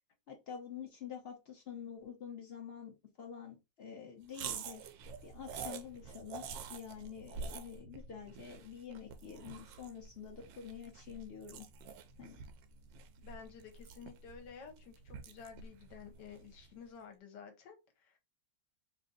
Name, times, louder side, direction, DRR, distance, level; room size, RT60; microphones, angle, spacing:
voice 1, 0.3-4.8 5.2-6.4 6.7-11.7 12.2-12.4, left 7 dB, 85° left, 0.5 m, -47 dB
sound 1, 4.3-16.8, right 5 dB, 80° right, 1.3 m, -48 dB
voice 2, 13.2-18.2, left 6 dB, 70° left, 1.4 m, -52 dB
3.2 x 2.5 x 3.8 m
omnidirectional pair, 2.0 m